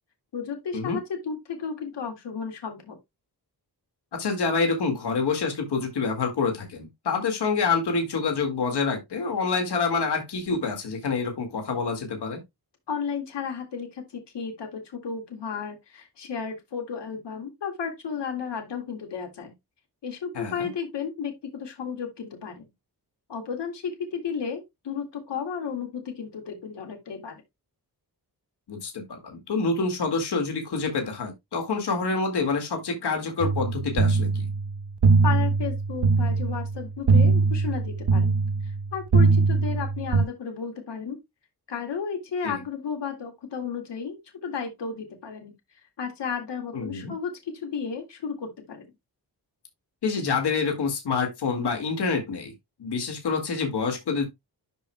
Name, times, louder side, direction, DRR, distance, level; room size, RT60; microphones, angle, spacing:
voice 1, 0.3-3.0 12.9-19.5 20.0-22.6 23.3-27.4 35.2-38.3 38.6-41.2 41.7-45.5 46.0-48.9, left 6 dB, 85° left, 2.1 m, -33 dB
voice 2, 4.1-12.4 20.3-20.7 28.7-34.5 42.4-42.6 46.7-47.1 50.0-52.5 52.8-54.3, left 4 dB, 70° left, 2.1 m, -27 dB
sound 1, 33.4-40.2, right 4 dB, 70° right, 1.1 m, -22 dB
12.0 x 4.7 x 2.2 m
wide cardioid pair, 165°, 41 cm